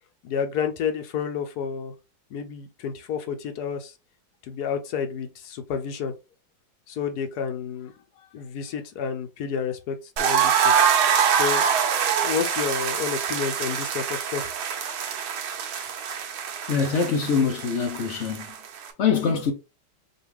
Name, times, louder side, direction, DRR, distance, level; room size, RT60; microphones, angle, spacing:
voice 1, 0.2-1.9 2.3-3.9 4.4-6.1 6.9-7.9 8.2-10.7 11.3-11.7 12.2-14.5, left 7 dB, 65° left, 1.0 m, -30 dB
sound 1, 10.2-18.9, right 7 dB, 90° right, 1.7 m, -25 dB
voice 2, 16.7-18.4 19.0-19.5, left 6 dB, 85° left, 0.6 m, -23 dB
5.3 x 2.5 x 3.1 m
omnidirectional pair, 2.2 m